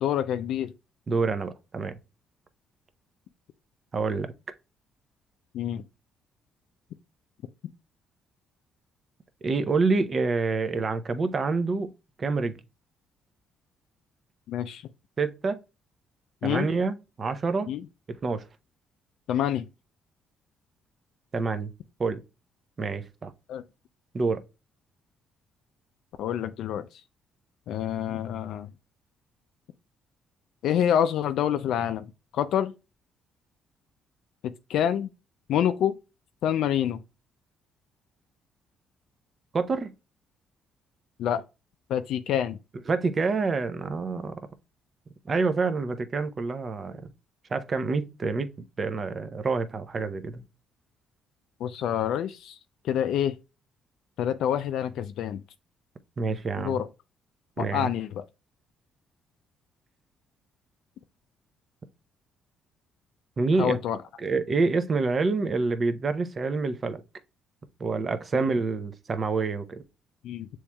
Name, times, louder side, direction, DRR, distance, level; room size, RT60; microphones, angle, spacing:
voice 1, 0.0-0.7 5.5-5.8 14.5-14.8 16.4-16.7 17.7-17.8 19.3-19.7 23.5-23.6 26.2-26.8 27.7-28.7 30.6-32.1 32.3-32.7 34.7-35.1 35.5-36.0 36.4-37.0 41.2-41.4 41.9-42.6 51.6-52.5 52.8-53.3 54.2-55.4 56.6-56.9 57.6-58.2 63.6-64.0 68.4-68.5 70.2-70.5, left 10 dB, 75° left, 0.3 m, -27 dB
voice 2, 1.1-2.0 3.9-4.3 9.4-11.9 12.2-12.6 15.2-15.6 16.4-17.7 18.2-18.4 21.3-21.7 22.0-22.2 22.8-23.3 24.1-24.4 39.5-39.9 42.9-44.4 45.3-47.0 47.5-48.5 48.8-50.4 56.2-56.8 57.6-57.9 63.4-63.8 64.2-67.0 67.8-69.8, right 4 dB, 40° right, 0.6 m, -27 dB
6.9 x 3.1 x 2.2 m
supercardioid pair, 75°, 0 cm